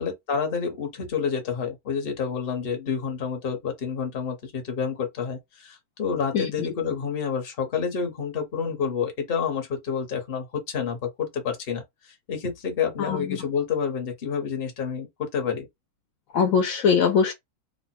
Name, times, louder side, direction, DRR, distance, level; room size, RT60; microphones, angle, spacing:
voice 1, 0.0-15.7, left 6 dB, 45° left, 1.0 m, -29 dB
voice 2, 13.0-13.4 16.3-17.3, left 6 dB, 70° left, 1.1 m, -21 dB
2.9 x 2.2 x 4.1 m
omnidirectional pair, 1.5 m